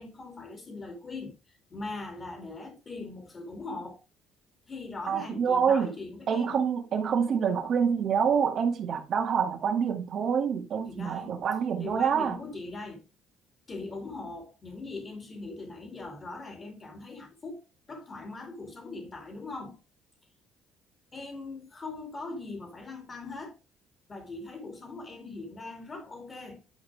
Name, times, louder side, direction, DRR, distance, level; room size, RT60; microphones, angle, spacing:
voice 1, 0.0-4.0 4.7-6.7 10.9-11.4 11.8-13.1 13.7-17.6 17.9-19.8 21.1-23.6 24.1-26.6, left 3 dB, 30° left, 2.8 m, -41 dB
voice 2, 5.1-5.9 6.3-12.4, right 7 dB, 55° right, 2.1 m, -26 dB
10.5 x 5.0 x 3.5 m
cardioid pair, 105°, 0 cm